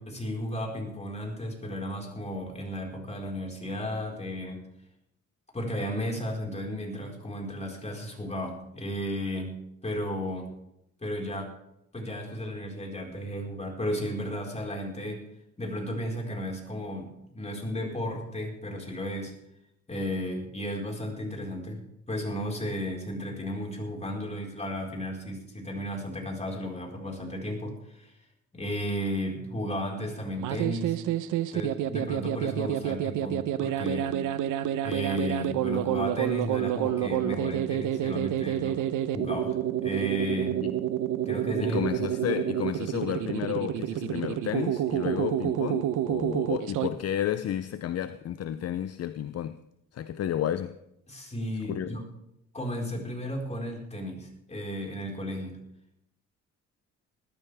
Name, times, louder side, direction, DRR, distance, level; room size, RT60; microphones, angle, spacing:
voice 1, 0.0-4.7 5.5-9.5 9.8-10.5 11.0-11.6 11.9-15.2 15.6-19.3 19.9-21.8 22.1-28.1 28.5-31.0 31.5-34.1 34.8-40.6 41.2-41.8 51.1-52.0 52.5-55.6, equal, 20° left, 4.8 m, -34 dB
sound 1, 30.3-46.9, right 11 dB, 85° right, 0.9 m, -29 dB
voice 2, 41.6-49.6 49.9-50.8 51.7-52.0, left 10 dB, 55° left, 0.7 m, -31 dB
20.0 x 13.0 x 3.5 m
cardioid pair, 90°, 30 cm